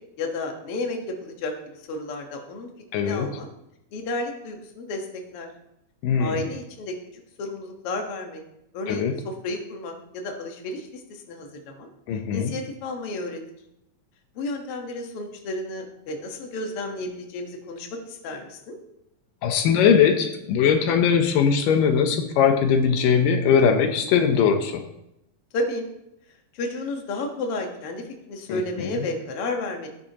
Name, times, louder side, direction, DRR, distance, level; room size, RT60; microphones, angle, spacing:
voice 1, 0.2-2.7 3.0-3.5 3.9-5.5 6.2-7.0 7.4-8.4 8.7-11.9 12.3-13.4 14.4-18.8 25.5-25.9 26.5-29.9, left 2 dB, 55° left, 2 dB, 1.9 m, -32 dB
voice 2, 2.9-3.3 6.0-6.4 8.9-9.2 12.1-12.5 19.4-24.8 28.5-29.0, left 7 dB, 80° left, 6 dB, 2.5 m, -20 dB
15.0 x 9.7 x 2.9 m, 0.83 s
omnidirectional pair, 3.9 m